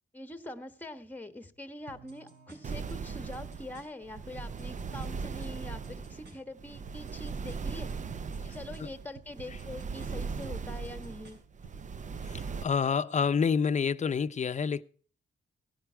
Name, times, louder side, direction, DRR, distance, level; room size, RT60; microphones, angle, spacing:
voice 1, 0.1-7.9 8.4-11.4, left 1 dB, 10° left, 1.3 m, -44 dB
sound 1, 1.9-11.9, right 5 dB, 60° right, 4.9 m, -55 dB
sound 2, 2.6-12.6, right 5 dB, 40° right, 0.6 m, -39 dB
voice 2, 12.3-14.8, left 6 dB, 40° left, 0.7 m, -28 dB
17.0 x 10.0 x 4.6 m
cardioid pair, 110°, 19 cm